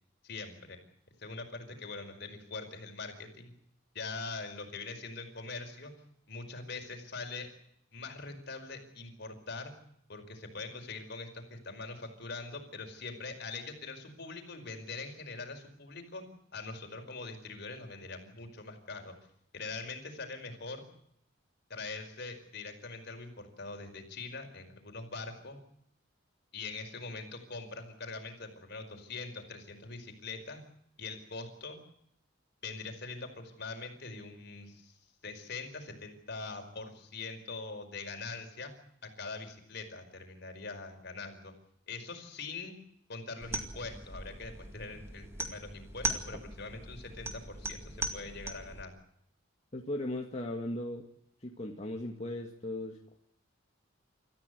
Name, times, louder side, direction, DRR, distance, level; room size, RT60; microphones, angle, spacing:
voice 1, 0.2-0.8 1.2-3.5 3.9-5.9 6.3-7.5 7.9-9.7 10.1-16.2 16.5-19.1 19.5-20.8 21.7-25.6 26.5-30.6 31.0-31.8 32.6-35.0 35.2-38.7 39.0-41.5 41.9-42.8 43.1-48.9, left 3 dB, 55° left, 5 dB, 5.1 m, -43 dB
sound 1, 43.4-48.8, right 2 dB, 15° right, 2.3 m, -39 dB
voice 2, 49.7-51.0 51.4-53.0, left 1 dB, 35° left, 1 dB, 2.0 m, -37 dB
28.0 x 14.5 x 8.3 m, 0.73 s
head